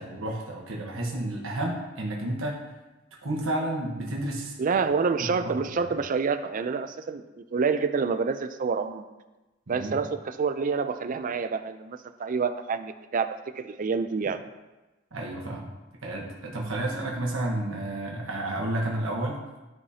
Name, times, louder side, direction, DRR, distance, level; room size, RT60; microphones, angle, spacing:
voice 1, 0.0-2.6 3.2-4.8 5.9-6.0 9.7-9.9 15.1-15.7 16.0-19.4, right 1 dB, 80° right, -2 dB, 1.2 m, -31 dB
voice 2, 4.6-9.0 9.7-14.4, right 5 dB, 40° right, 10 dB, 0.4 m, -28 dB
11.0 x 4.9 x 2.8 m, 1.1 s
head